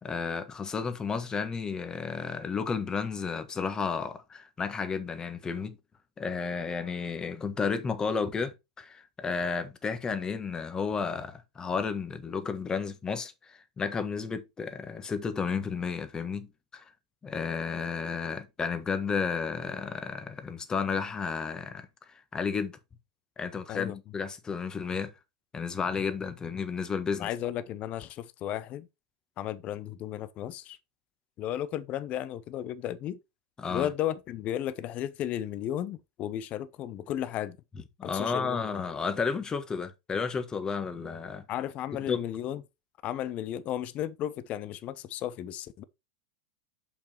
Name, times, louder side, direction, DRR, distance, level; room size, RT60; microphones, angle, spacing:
voice 1, 0.0-5.8 6.2-16.8 17.2-22.8 23.4-25.1 25.5-27.3 33.6-33.9 38.0-41.4 42.0-42.2, left 5 dB, 20° left, 1.4 m, -32 dB
voice 2, 27.2-28.9 29.4-30.8 31.4-33.2 33.7-37.6 38.0-38.8 41.5-42.6 43.0-45.8, left 11 dB, 40° left, 0.7 m, -34 dB
6.9 x 5.7 x 4.4 m
hypercardioid pair, 95°, 4 cm